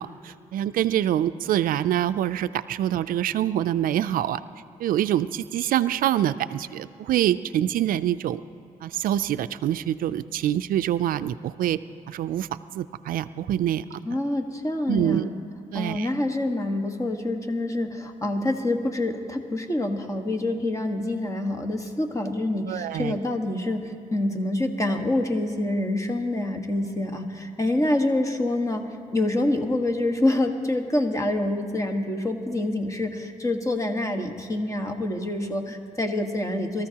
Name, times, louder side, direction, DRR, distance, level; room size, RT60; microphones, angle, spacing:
voice 1, 0.0-4.4 4.8-8.4 8.8-11.8 12.1-12.5 12.7-13.8 14.9-15.3 15.7-16.1 22.7-23.2, right 11 dB, 75° right, 14 dB, 0.4 m, -25 dB
voice 2, 14.0-15.3 15.7-36.9, left 1 dB, 20° left, 4 dB, 1.4 m, -26 dB
23.5 x 14.0 x 2.9 m, 2.8 s
cardioid pair, 85°, 14 cm